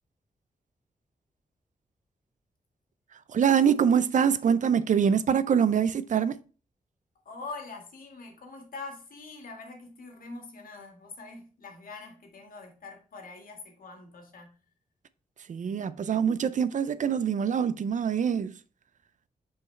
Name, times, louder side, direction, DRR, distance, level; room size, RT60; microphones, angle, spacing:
voice 1, 3.3-6.4 15.5-18.6, right 7 dB, 60° right, 0.5 m, -24 dB
voice 2, 7.3-14.6, left 3 dB, 80° left, 1.8 m, -44 dB
6.0 x 4.7 x 4.3 m
wide cardioid pair, 165°, 14 cm